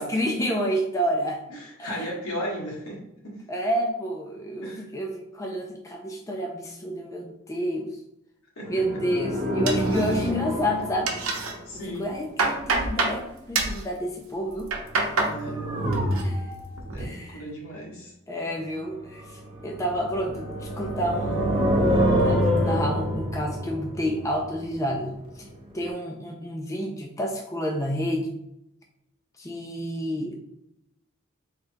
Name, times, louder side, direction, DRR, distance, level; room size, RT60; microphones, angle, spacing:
voice 1, 0.0-1.4 1.8-2.1 3.5-8.0 8.7-11.5 11.9-14.7 15.0-15.1 15.5-15.6 16.2-16.4 17.0-17.4 18.3-25.5 25.7-28.4 29.4-30.4, equal, 15° left, 1 dB, 0.4 m, -30 dB
voice 2, 1.5-3.4 4.6-4.9 8.6-8.7 11.6-12.1 15.2-16.1 16.8-18.1, equal, 80° left, -2 dB, 1.4 m, -35 dB
sound 1, 8.6-11.7 15.1-16.8 19.2-25.2 25.5-25.6, equal, 25° right, 0.7 m, -26 dB
sound 2, 9.7-10.5 10.8-11.5 12.0-13.2 13.5-13.8 14.5-15.4 15.7-16.2 16.6-17.0, right 3 dB, 80° right, 0.7 m, -27 dB
3.6 x 2.2 x 4.4 m, 0.84 s
head